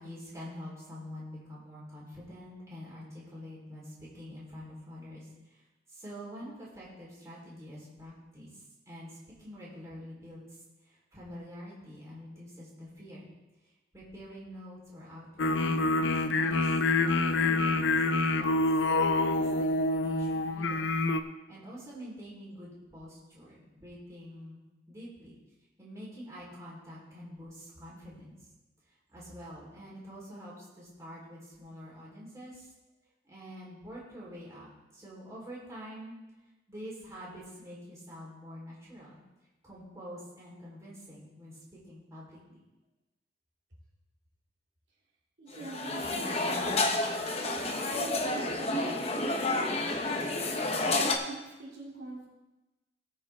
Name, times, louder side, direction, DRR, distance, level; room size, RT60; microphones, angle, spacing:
voice 1, 0.0-5.6 5.9-13.3 13.6-16.7 17.0-18.5 18.9-20.9 21.5-25.4 25.8-28.4 29.1-32.7 33.2-36.2 36.7-39.2 39.6-42.6, equal, 15° right, -7 dB, 4.0 m, -46 dB
sound 1, 15.4-21.2, left 2 dB, 80° left, 0.6 m, -27 dB
voice 2, 45.4-49.2 50.9-52.3, right 2 dB, 65° right, -5 dB, 2.5 m, -45 dB
sound 2, 45.5-51.1, left 2 dB, 35° left, 0.9 m, -30 dB
19.0 x 6.6 x 3.6 m, 1.1 s
head